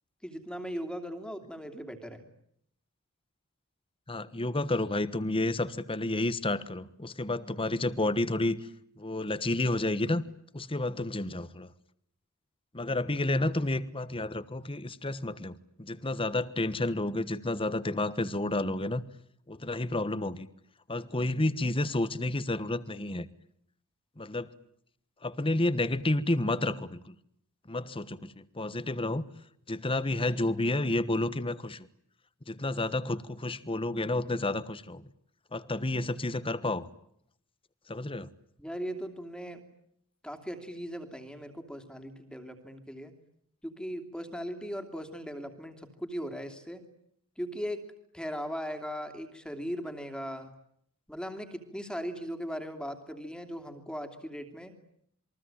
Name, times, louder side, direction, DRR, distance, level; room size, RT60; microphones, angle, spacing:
voice 1, 0.2-2.2 38.6-39.7 40.2-43.1 43.6-46.9 47.4-47.9 48.1-50.5 51.1-54.7, equal, 5° left, 7 dB, 2.8 m, -38 dB
voice 2, 4.1-8.7 9.0-10.2 10.5-11.7 12.7-19.0 19.5-20.5 20.9-23.3 24.2-24.5 25.2-27.1 27.7-29.2 29.7-31.9 32.5-35.1 35.5-36.9 37.9-38.3, left 2 dB, 25° left, 15 dB, 1.3 m, -30 dB
28.5 x 23.0 x 9.0 m, 0.71 s
head